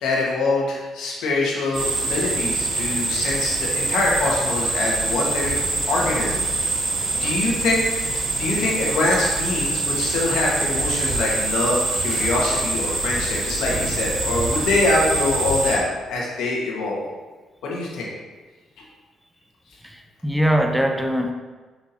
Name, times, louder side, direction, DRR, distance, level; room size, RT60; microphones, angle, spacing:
voice 1, 0.0-5.6 5.9-6.4 7.2-7.8 8.1-17.0 17.6-18.1, left 2 dB, 85° left, -3 dB, 1.5 m, -24 dB
sound 1, 1.7-15.8, right 2 dB, 70° right, 1.5 m, -25 dB
voice 2, 19.8-21.3, equal, 5° right, 4 dB, 0.5 m, -22 dB
5.9 x 5.7 x 2.8 m, 1.3 s
cardioid pair, 90°, 0 cm